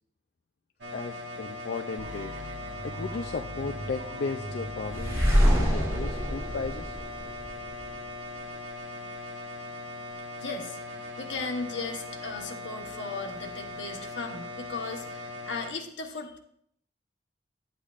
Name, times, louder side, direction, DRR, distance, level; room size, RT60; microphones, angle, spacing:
sound 1, 0.8-15.7, left 1 dB, 90° right, 1.2 m, -40 dB
voice 1, 0.9-2.4 2.8-7.0, left 4 dB, 60° left, 5 dB, 0.4 m, -35 dB
sound 2, 2.0-7.9, equal, 50° right, 0.8 m, -42 dB
sound 3, 4.9-7.9, equal, 15° right, 1.6 m, -25 dB
voice 2, 10.4-10.8 11.2-16.4, left 4 dB, 85° left, 3 dB, 1.1 m, -36 dB
11.0 x 8.2 x 2.5 m, 0.69 s
head